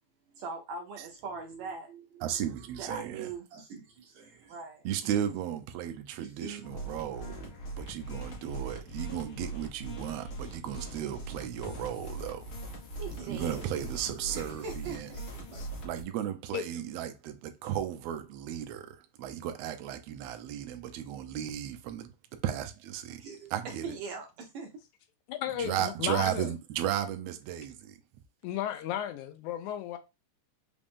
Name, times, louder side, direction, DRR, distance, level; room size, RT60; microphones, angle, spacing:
voice 1, 0.3-2.4 2.8-4.9 6.2-6.6 13.0-15.6 23.1-23.5 23.8-24.7, right 4 dB, 70° right, 1.8 m, -42 dB
voice 2, 2.2-3.3 4.8-12.5 13.3-15.1 15.8-22.1 22.4-23.2 23.5-24.0 25.6-28.0, right 10 dB, 90° right, 1.4 m, -35 dB
sound 1, 6.6-16.0, right 2 dB, 55° left, 1.5 m, -41 dB
voice 3, 25.3-26.5 28.4-30.0, left 11 dB, 80° left, 1.9 m, -34 dB
5.1 x 2.5 x 3.5 m
omnidirectional pair, 3.7 m